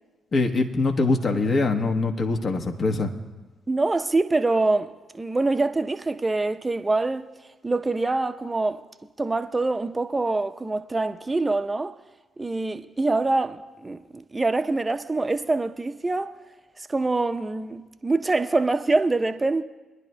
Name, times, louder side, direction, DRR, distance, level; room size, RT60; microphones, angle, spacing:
voice 1, 0.3-3.1, left 3 dB, 45° left, 1.2 m, -23 dB
voice 2, 3.7-7.3 7.6-8.8 9.2-11.9 12.4-16.3 16.8-19.6, right 3 dB, 25° right, 0.7 m, -25 dB
23.5 x 11.0 x 2.2 m
hypercardioid pair, 40°, 0 cm